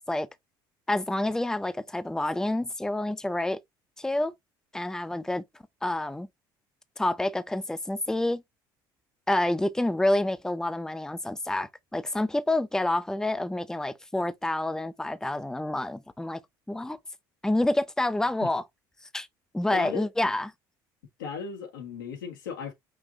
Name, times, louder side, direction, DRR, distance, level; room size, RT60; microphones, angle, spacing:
voice 1, 0.9-3.6 4.0-4.3 4.7-5.4 5.8-6.3 7.0-8.4 9.3-16.4 16.7-17.0 17.4-18.6 19.1-19.3 19.5-20.5, left 1 dB, 5° left, 0.6 m, -28 dB
voice 2, 19.7-20.0 21.2-22.7, left 7 dB, 85° left, 1.6 m, -36 dB
5.6 x 2.9 x 2.8 m
hypercardioid pair, 65°, 11 cm